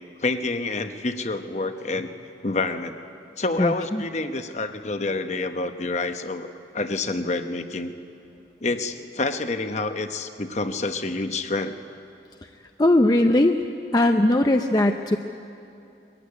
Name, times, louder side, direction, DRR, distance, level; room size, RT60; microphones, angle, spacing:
voice 1, 0.2-2.1 2.4-3.0 3.4-6.5 6.7-7.9 8.6-11.7, left 3 dB, 40° left, 8 dB, 0.9 m, -28 dB
voice 2, 3.6-4.0 12.4-12.5 12.8-13.6 13.9-15.2, left 1 dB, 20° left, 5 dB, 0.6 m, -19 dB
21.5 x 15.0 x 9.6 m, 2.6 s
head